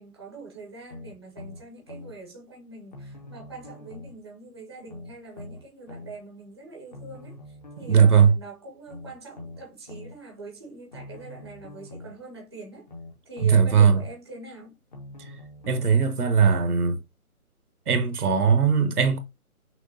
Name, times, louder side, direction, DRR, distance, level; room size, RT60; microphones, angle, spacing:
voice 1, 0.0-12.9 13.2-14.7, right 3 dB, 20° right, 0.5 m, -43 dB
sound 1, 0.9-2.2 2.9-4.2 4.9-6.2 6.9-8.2 8.9-10.2 10.9-12.2 12.9-14.2 14.9-16.2 16.9-17.0, left 2 dB, 30° left, 0.6 m, -43 dB
voice 2, 7.8-8.3 13.4-14.0 15.7-17.0 17.9-19.2, right 6 dB, 80° right, 1.0 m, -19 dB
5.9 x 2.1 x 2.6 m
figure-of-eight pair, 155°, 45 cm